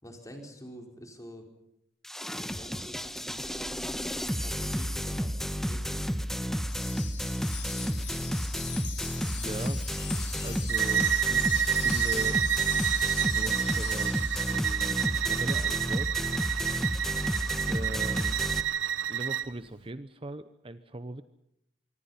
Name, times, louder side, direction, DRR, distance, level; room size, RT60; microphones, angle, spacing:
voice 1, 0.0-1.5 2.5-6.0, equal, 15° left, 3 dB, 4.8 m, -47 dB
sound 1, 2.0-18.6, equal, ahead, 1.2 m, -32 dB
Wind chime, 6.7-14.9, left 9 dB, 65° left, 5.3 m, -41 dB
voice 2, 9.3-9.8 10.4-12.4 13.3-14.1 14.4-16.2 17.7-18.4 19.1-21.2, right 2 dB, 30° right, 12 dB, 0.8 m, -40 dB
Bowed string instrument, 10.7-19.5, right 9 dB, 75° right, 0.9 m, -29 dB
26.0 x 24.5 x 5.7 m, 0.79 s
head